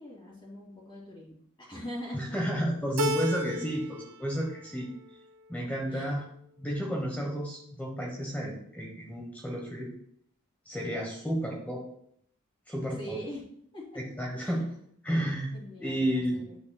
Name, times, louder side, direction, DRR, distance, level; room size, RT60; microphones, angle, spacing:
voice 1, 0.0-2.2 5.9-6.2 12.9-13.5 13.7-14.0 14.4-14.6 15.5-16.6, equal, 25° left, -8 dB, 2.4 m, -42 dB
voice 2, 2.1-4.9 5.5-6.2 6.6-9.9 10.6-11.8 12.7-13.2 14.0-14.6 15.0-15.5 15.8-16.4, equal, 5° left, -2 dB, 1.1 m, -31 dB
Keyboard (musical), 3.0-4.1 4.4-5.1, left 1 dB, 70° right, 0.6 m, -32 dB
9.7 x 8.2 x 2.3 m, 0.66 s
head